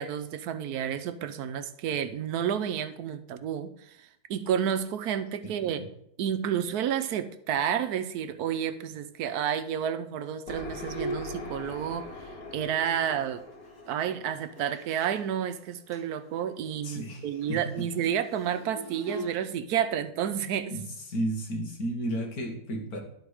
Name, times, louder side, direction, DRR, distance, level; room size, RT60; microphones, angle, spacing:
voice 1, 0.0-4.0 4.3-5.8 6.2-12.1 12.5-13.4 13.9-20.7, right 9 dB, 75° right, 9 dB, 1.1 m, -30 dB
voice 2, 5.4-5.9 16.8-17.9 20.7-20.8 21.1-23.0, right 1 dB, 70° left, 2 dB, 1.9 m, -33 dB
sound 1, 10.5-16.1, left 3 dB, 85° left, 1.9 m, -43 dB
Bowed string instrument, 10.9-15.2 15.5-15.6 15.9-16.2 16.5-19.3, right 1 dB, 15° left, 2.1 m, -42 dB
11.5 x 4.3 x 4.8 m, 0.73 s
omnidirectional pair, 1.7 m